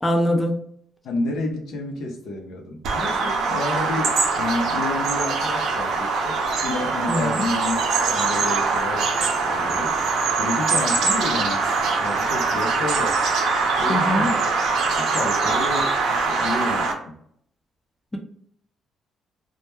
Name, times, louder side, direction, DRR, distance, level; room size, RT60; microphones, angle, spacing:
voice 1, 0.0-0.6 7.1-7.5 13.9-14.3, equal, 15° left, 2 dB, 0.4 m, -22 dB
voice 2, 1.0-10.1 10.4-11.7 12.0-13.2 13.8-14.4 15.0-17.2, left 2 dB, 80° left, 1 dB, 0.6 m, -30 dB
Bird vocalization bird call bird song, 2.8-16.9, right 4 dB, 80° right, 0.5 m, -23 dB
2.2 x 2.2 x 2.9 m, 0.66 s
cardioid pair, 90°, 0 cm